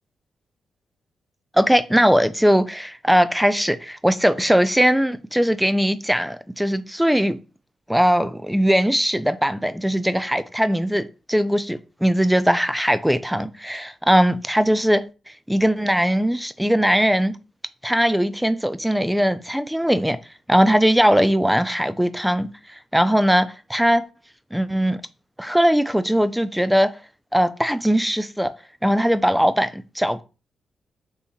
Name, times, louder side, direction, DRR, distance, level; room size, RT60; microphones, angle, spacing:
voice 1, 1.5-7.4 7.9-15.0 15.5-17.4 17.8-20.2 20.5-22.5 22.9-24.0 24.5-25.0 25.4-26.9 27.3-28.5 28.8-30.2, equal, 5° right, 0.4 m, -20 dB
3.4 x 3.0 x 4.1 m
supercardioid pair, 60°, 0 cm